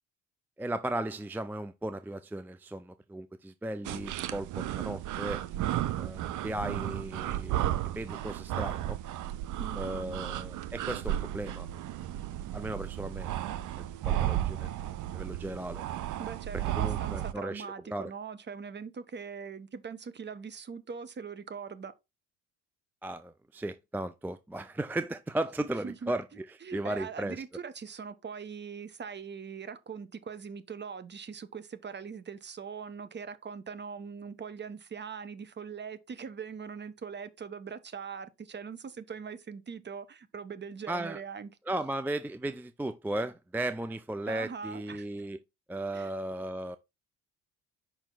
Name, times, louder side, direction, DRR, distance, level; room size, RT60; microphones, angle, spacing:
voice 1, 0.6-5.4 6.0-9.0 9.8-11.7 12.5-15.8 16.5-18.1 23.0-27.4 40.9-41.2 41.7-45.4 45.7-46.8, right 1 dB, 5° right, 0.4 m, -36 dB
sound 1, 3.8-17.3, right 13 dB, 60° right, 0.7 m, -34 dB
voice 2, 9.6-10.2 16.2-21.9 25.6-26.1 26.6-41.5 44.3-45.1 45.9-46.1, right 6 dB, 30° right, 0.9 m, -41 dB
5.6 x 4.5 x 3.8 m
hypercardioid pair, 65°, 34 cm